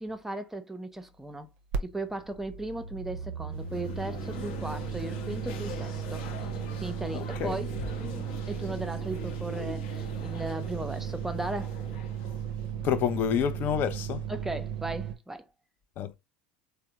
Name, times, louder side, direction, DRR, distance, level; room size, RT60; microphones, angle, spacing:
voice 1, 0.0-1.5 1.8-6.3 6.8-7.7 8.5-11.8 14.3-15.5, right 2 dB, 5° right, 0.5 m, -36 dB
sound 1, 1.7-1.8 2.1-15.2, right 9 dB, 65° right, 0.4 m, -35 dB
sound 2, 3.5-13.5, left 6 dB, 65° left, 0.8 m, -43 dB
voice 2, 7.1-7.6 12.8-14.2 16.0-16.1, left 9 dB, 45° left, 0.4 m, -28 dB
3.4 x 2.0 x 2.8 m
hypercardioid pair, 80°, 4 cm